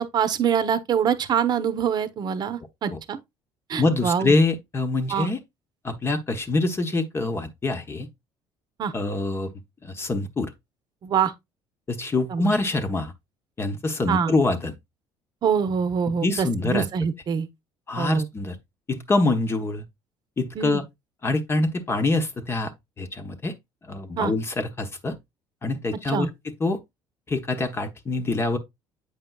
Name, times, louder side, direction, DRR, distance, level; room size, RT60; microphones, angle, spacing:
voice 1, 0.0-3.2 3.7-4.4 5.1-5.3 8.8-8.9 11.0-11.3 12.3-12.5 14.1-14.3 15.4-17.5 18.0-18.3 20.6-20.8 24.2-24.3 26.1-26.3, right 7 dB, 45° right, 0.9 m, -25 dB
voice 2, 3.8-5.4 5.8-8.1 8.9-9.5 9.8-10.5 11.9-13.1 13.6-14.7 16.1-16.9 17.9-18.6 18.9-19.8 20.4-20.8 21.2-22.7 23.0-23.5 23.9-25.2 25.6-26.3 26.6-26.8 27.3-28.6, left 2 dB, 25° left, 1.0 m, -25 dB
7.9 x 5.2 x 2.3 m
cardioid pair, 100°, 10 cm